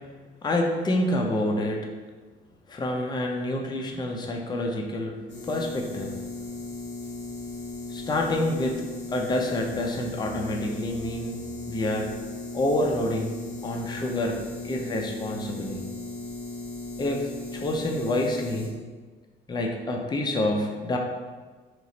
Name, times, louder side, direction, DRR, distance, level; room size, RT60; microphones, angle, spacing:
voice 1, 0.4-1.9 2.7-6.2 7.9-8.8 9.1-11.4 11.7-12.1 12.5-13.3 13.6-15.8 17.0-18.7 19.5-21.0, left 1 dB, 20° left, 1 dB, 0.5 m, -28 dB
sound 1, 5.3-18.7, left 2 dB, 60° left, 1.3 m, -37 dB
3.0 x 2.4 x 4.0 m, 1.3 s
cardioid pair, 90°, 20 cm